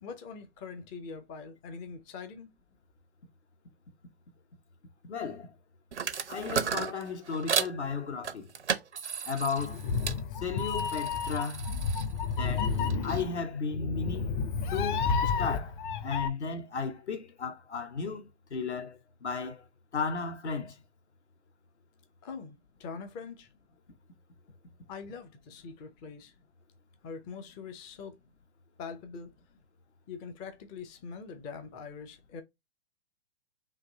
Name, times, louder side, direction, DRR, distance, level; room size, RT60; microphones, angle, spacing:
voice 1, 0.0-2.5 22.2-23.5 24.9-26.3 27.0-28.2 28.8-29.3 30.1-32.4, left 5 dB, 15° left, 0.4 m, -43 dB
voice 2, 5.0-5.5 6.3-8.5 9.3-9.8 10.4-11.7 12.4-12.7 13.0-14.4 14.7-19.6 19.9-20.8, left 5 dB, 80° left, 1.0 m, -35 dB
sound 1, 5.9-7.8 8.2-10.2 10.6-13.2, right 6 dB, 85° right, 0.9 m, -35 dB
Meow, 9.6-16.3, left 5 dB, 45° left, 0.7 m, -31 dB
3.8 x 2.6 x 3.8 m
figure-of-eight pair, 120°, 33 cm